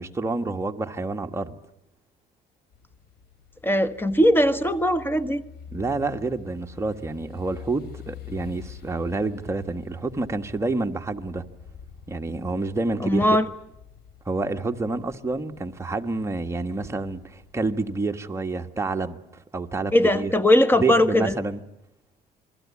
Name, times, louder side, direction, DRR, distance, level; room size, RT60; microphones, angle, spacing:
voice 1, 0.0-1.5 5.7-11.4 12.1-13.2 14.2-19.2 19.5-20.3 20.8-21.6, right 3 dB, 15° right, 1.6 m, -28 dB
sound 1, 2.7-18.1, left 8 dB, 70° left, 4.1 m, -47 dB
voice 2, 3.6-5.4 13.0-13.5 19.9-21.3, left 1 dB, 15° left, 1.4 m, -20 dB
28.0 x 21.5 x 8.6 m
cardioid pair, 110°, 17 cm